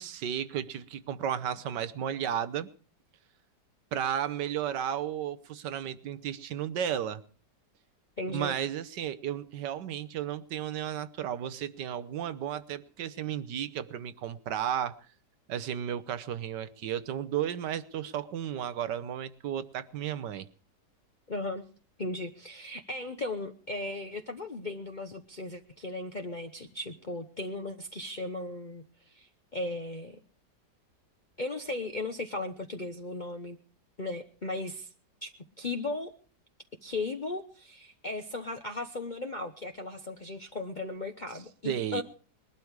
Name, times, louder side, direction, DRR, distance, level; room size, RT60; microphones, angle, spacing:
voice 1, 0.0-2.7 3.9-7.2 8.3-14.9 15.5-20.5 41.6-42.0, right 9 dB, 75° right, 13 dB, 1.5 m, -33 dB
voice 2, 8.2-8.5 21.3-21.6 22.0-28.8 29.1-30.2 31.4-33.6 34.0-34.9 35.2-35.3 35.6-36.1 36.8-42.0, left 2 dB, 35° left, 4 dB, 0.8 m, -36 dB
21.0 x 12.0 x 4.8 m, 0.42 s
omnidirectional pair, 1.9 m